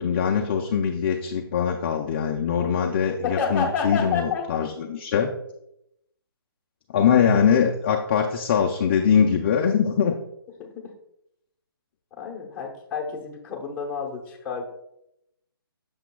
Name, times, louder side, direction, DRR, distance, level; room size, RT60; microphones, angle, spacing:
voice 1, 0.0-5.3 6.9-10.2, left 7 dB, 25° left, 1 dB, 0.4 m, -22 dB
voice 2, 3.2-4.6 7.3-7.5 10.6-10.9 12.2-14.6, left 5 dB, 10° left, -2 dB, 0.8 m, -29 dB
8.1 x 6.8 x 2.3 m, 0.80 s
hypercardioid pair, 165°, 13 cm